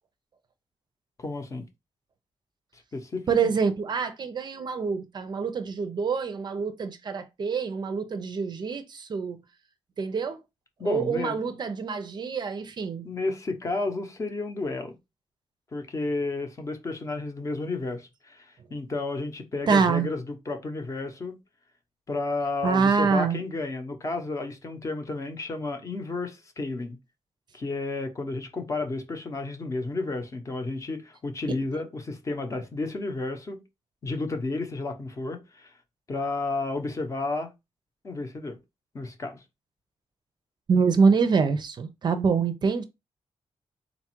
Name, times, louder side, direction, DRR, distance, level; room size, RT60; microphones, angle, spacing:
voice 1, 1.2-1.6 2.9-3.2 10.8-11.4 13.0-15.0 15.7-21.4 22.1-27.0 27.5-33.6 34.0-35.7 36.1-37.5 38.0-38.6 38.9-39.4, left 3 dB, 30° left, 0.7 m, -32 dB
voice 2, 3.3-9.4 10.0-10.4 10.8-13.1 19.7-20.1 22.6-23.4 40.7-42.8, right 5 dB, 45° right, 0.5 m, -25 dB
4.0 x 2.3 x 4.4 m
wide cardioid pair, 180°, 11 cm